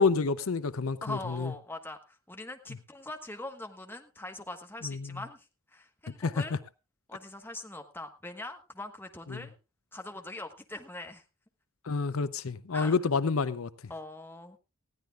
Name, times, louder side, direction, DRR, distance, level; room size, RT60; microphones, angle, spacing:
voice 1, 0.0-1.5 4.8-5.0 6.2-6.4 9.3-9.4 11.9-13.7, left 4 dB, 75° left, 0.6 m, -28 dB
voice 2, 1.0-6.6 7.1-9.5 9.9-11.2 12.7-13.0 13.9-14.6, left 2 dB, 10° left, 1.3 m, -42 dB
20.0 x 15.0 x 2.4 m
head